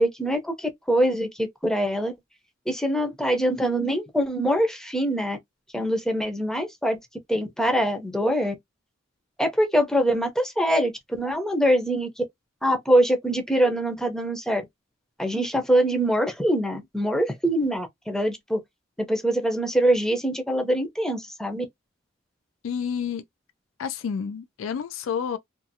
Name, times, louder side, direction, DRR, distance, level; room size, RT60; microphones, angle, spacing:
voice 1, 0.0-2.1 2.7-5.4 5.7-7.0 7.3-8.5 9.4-12.2 12.6-14.6 15.2-18.6 19.0-21.7, right 1 dB, 5° left, 0.6 m, -24 dB
voice 2, 22.6-23.2 23.8-25.4, left 7 dB, 85° left, 0.3 m, -29 dB
2.6 x 2.4 x 2.6 m
head